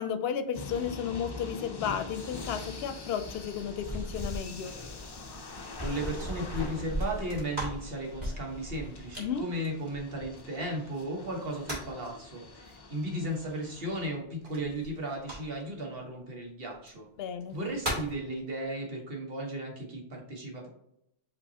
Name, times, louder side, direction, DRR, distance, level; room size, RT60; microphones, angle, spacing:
voice 1, 0.0-4.7 9.2-9.4 17.2-17.6, left 8 dB, 70° left, 9 dB, 0.8 m, -33 dB
sound 1, 0.5-14.1, left 3 dB, 35° left, 0.4 m, -44 dB
sound 2, 3.2-10.6 11.3-12.1 14.5-15.8 16.7-16.9 17.4-18.2, equal, 45° right, 1.6 m, -38 dB
voice 2, 5.8-17.0 17.5-20.7, right 1 dB, 65° right, 0 dB, 1.5 m, -35 dB
5.4 x 3.0 x 2.8 m, 0.77 s
omnidirectional pair, 1.1 m